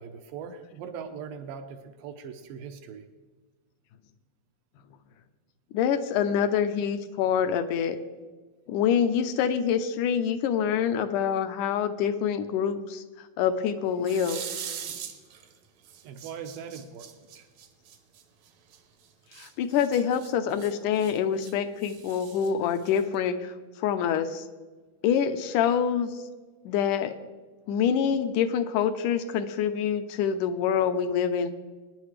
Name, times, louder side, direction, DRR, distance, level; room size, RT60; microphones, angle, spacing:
voice 1, 0.0-3.1 16.0-17.5, right 6 dB, 85° right, 7 dB, 2.7 m, -40 dB
voice 2, 5.7-8.0 8.7-13.0 13.4-14.4 19.4-23.5 23.8-24.4 25.0-26.1 26.7-27.2 27.7-31.5, left 8 dB, 75° left, 10 dB, 2.1 m, -26 dB
sound 1, 14.0-15.5 15.8-18.8 19.3-21.5 21.8-23.2, right 8 dB, 65° right, 1.8 m, -41 dB
22.5 x 10.5 x 3.3 m, 1.3 s
omnidirectional pair, 4.0 m